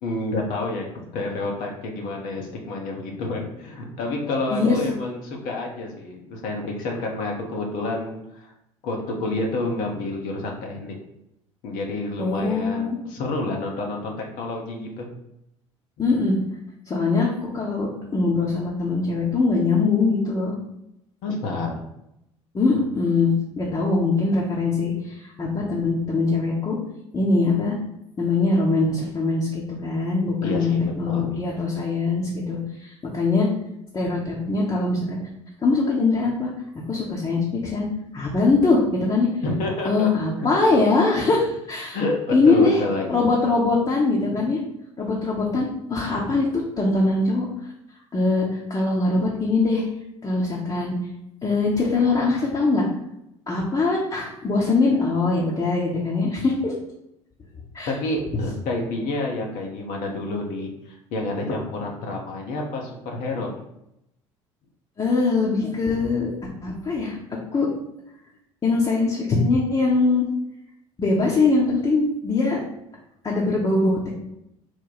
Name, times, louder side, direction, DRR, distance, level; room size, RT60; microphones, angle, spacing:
voice 1, 0.0-8.4 8.8-10.9 11.6-15.1 21.2-21.7 30.4-31.3 39.4-40.1 40.4-40.5 41.9-42.2 42.4-43.2 44.3-44.4 57.9-63.6, left 2 dB, 60° left, 1 dB, 0.8 m, -29 dB
voice 2, 12.2-13.0 16.0-16.3 16.9-20.5 22.5-26.8 27.1-27.7 28.2-33.5 33.9-35.2 35.6-36.5 36.9-37.9 38.1-39.3 39.8-42.0 42.3-42.8 43.1-44.6 45.0-47.5 48.1-49.8 50.2-50.9 51.4-52.8 53.5-56.7 57.7-57.9 65.0-66.3 66.6-67.2 67.5-67.7 68.6-70.3 71.0-72.6 73.2-74.2, left 3 dB, 25° left, -4 dB, 0.8 m, -22 dB
3.1 x 2.2 x 4.0 m, 0.83 s
hypercardioid pair, 60°, 16 cm